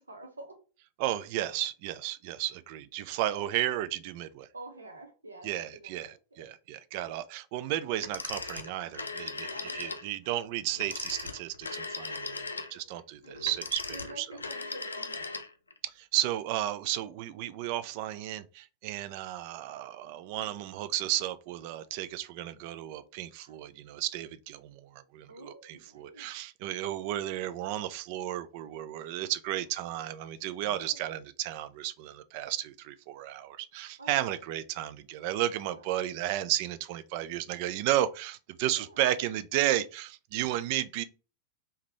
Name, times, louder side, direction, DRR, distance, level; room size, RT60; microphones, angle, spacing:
voice 1, 0.1-0.6 4.5-6.5 9.5-9.9 12.4-13.0 13.9-15.4 23.3-23.6 25.3-26.3 30.6-31.1 34.0-34.3 35.5-35.9 38.7-39.0, right 2 dB, 80° right, 0.8 m, -48 dB
voice 2, 1.0-4.5 5.4-12.4 12.7-14.3 15.8-41.0, right 13 dB, 45° right, 0.4 m, -33 dB
Telephone, 8.0-10.1 10.7-15.8, left 3 dB, 75° left, 0.4 m, -38 dB
3.6 x 2.8 x 3.1 m
figure-of-eight pair, 90°, 0 cm